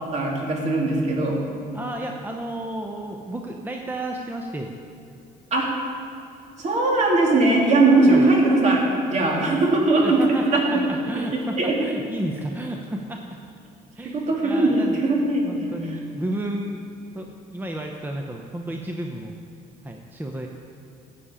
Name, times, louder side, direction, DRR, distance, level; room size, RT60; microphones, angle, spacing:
voice 1, 0.1-1.4 5.5-5.7 6.6-8.8 9.1-10.6 11.1-11.9 14.1-16.0, right 2 dB, 45° right, -1 dB, 2.7 m, -20 dB
voice 2, 1.7-4.7 8.1-8.3 10.0-13.4 13.9-15.0 15.5-16.8 17.1-19.3 19.8-20.5, right 1 dB, 10° right, 2 dB, 0.8 m, -32 dB
14.5 x 8.6 x 5.0 m, 2.7 s
cardioid pair, 110°, 17 cm